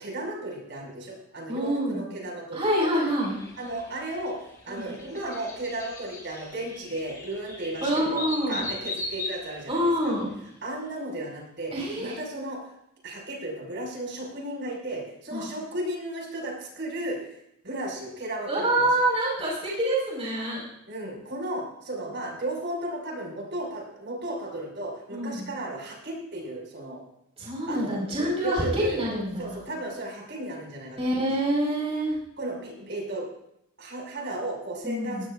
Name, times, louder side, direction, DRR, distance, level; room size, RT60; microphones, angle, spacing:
voice 1, 0.0-3.1 3.6-4.4 4.6-10.1 10.6-11.7 12.0-12.6 13.0-17.2 17.6-18.9 20.9-27.0 27.7-31.3 32.4-33.3 33.8-35.3, right 1 dB, 55° right, -1 dB, 6.0 m, -34 dB
voice 2, 1.5-2.1 2.5-3.4 4.7-4.9 7.8-8.7 9.7-10.3 11.7-12.2 15.3-15.5 18.5-20.6 25.1-25.5 27.4-29.6 31.0-32.1 34.8-35.3, right 1 dB, 30° right, -4 dB, 5.1 m, -26 dB
sound 1, 3.2-10.5, left 2 dB, 15° left, 3.5 m, -39 dB
19.5 x 18.5 x 2.6 m, 0.77 s
head